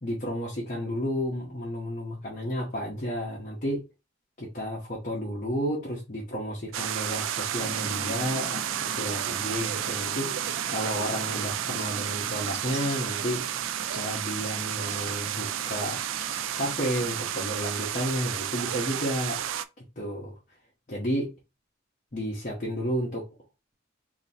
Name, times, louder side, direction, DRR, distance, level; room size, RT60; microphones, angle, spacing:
voice 1, 0.0-3.9 4.4-10.4 10.7-13.4 13.9-16.0 16.6-19.4 19.8-20.3 20.9-21.3 22.1-23.3, equal, 45° left, 1.0 m, -32 dB
sound 1, 6.7-19.6, right 10 dB, 85° right, 0.3 m, -31 dB
sound 2, 7.6-17.4, equal, 25° right, 1.3 m, -44 dB
3.8 x 2.9 x 2.8 m
head